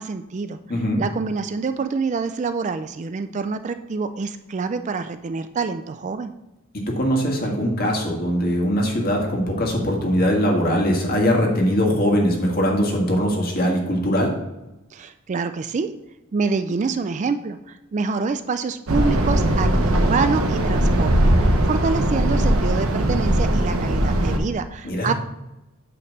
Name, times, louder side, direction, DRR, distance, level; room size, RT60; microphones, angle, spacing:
voice 1, 0.0-0.6 1.0-6.3 14.9-15.9 16.3-25.1, right 4 dB, 35° right, 10 dB, 0.3 m, -26 dB
voice 2, 0.7-1.0 6.9-14.3 24.8-25.1, equal, 45° left, 0 dB, 1.7 m, -21 dB
sound 1, 18.9-24.4, right 1 dB, 75° right, 1.0 m, -19 dB
8.5 x 3.3 x 6.3 m, 0.98 s
head